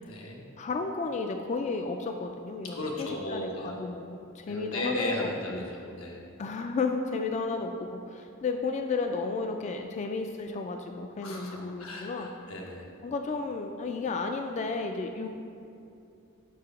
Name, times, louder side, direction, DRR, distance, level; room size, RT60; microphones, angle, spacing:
voice 1, 0.0-0.4 2.7-3.8 4.5-6.2 11.2-12.9, left 1 dB, 90° left, -1 dB, 1.1 m, -35 dB
voice 2, 0.6-5.7 6.4-12.3 13.0-15.3, left 4 dB, 35° left, 5 dB, 0.3 m, -33 dB
4.9 x 4.8 x 5.9 m, 2.6 s
head